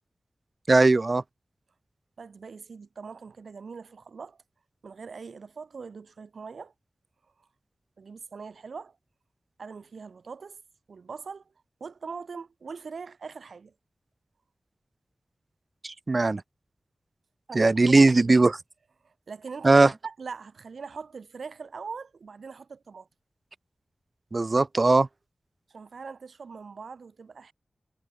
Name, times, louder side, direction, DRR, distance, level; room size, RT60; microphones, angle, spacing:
voice 1, 0.7-1.2 15.8-16.4 17.5-18.5 19.6-19.9 24.3-25.1, right 3 dB, 45° right, 0.6 m, -19 dB
voice 2, 2.2-4.4 4.8-6.7 8.0-9.0 9.6-10.6 10.9-11.4 11.8-13.7 17.5-18.4 19.0-23.1 25.7-27.5, right 5 dB, 85° right, 3.7 m, -41 dB
wide cardioid pair, 75°, 0 cm